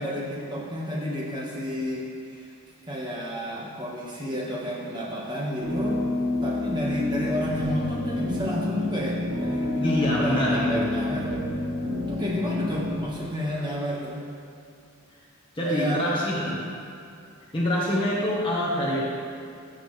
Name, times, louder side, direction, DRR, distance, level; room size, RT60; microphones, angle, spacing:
voice 1, 0.0-2.0 2.3-2.5 2.8-6.0 6.4-11.4 12.1-14.2 15.6-16.0 16.3-16.6, equal, 20° right, -4 dB, 1.5 m, -31 dB
sound 1, 5.6-13.0, left 2 dB, 70° right, 1.5 m, -28 dB
voice 2, 9.8-10.9 15.5-16.6 17.5-19.2, equal, 25° left, -7 dB, 1.3 m, -25 dB
15.5 x 6.7 x 3.3 m, 2.4 s
head